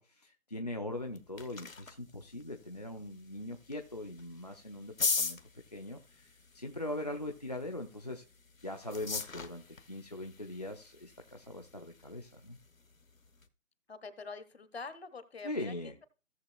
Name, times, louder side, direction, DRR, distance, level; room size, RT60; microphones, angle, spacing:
voice 1, 0.0-5.4 5.7-8.2 8.6-12.6 15.4-15.9, left 1 dB, 30° left, 2 dB, 0.5 m, -41 dB
sound 1, 0.9-13.5, left 4 dB, 70° left, 1.3 m, -42 dB
voice 2, 13.9-16.0, left 4 dB, 50° left, 12 dB, 1.2 m, -45 dB
17.0 x 6.9 x 2.3 m, 0.33 s
figure-of-eight pair, 150°, 42 cm